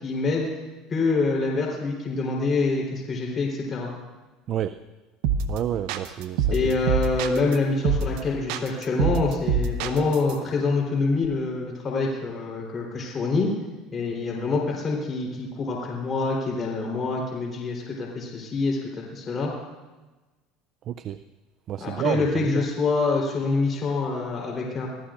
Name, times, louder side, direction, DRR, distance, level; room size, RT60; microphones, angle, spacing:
voice 1, 0.0-0.5 0.9-3.9 6.5-13.5 13.9-19.5 21.8-24.9, left 3 dB, 30° left, -2 dB, 3.7 m, -26 dB
sound 1, 5.2-5.6 5.9-7.6 7.9-8.2 8.5-10.3, right 6 dB, 80° right, 1.0 m, -25 dB
voice 2, 5.5-6.5 6.8-6.9 20.9-21.2 21.7-22.6, right 11 dB, 45° right, 11 dB, 0.4 m, -29 dB
24.5 x 15.5 x 2.5 m, 1.2 s
supercardioid pair, 120°, 0 cm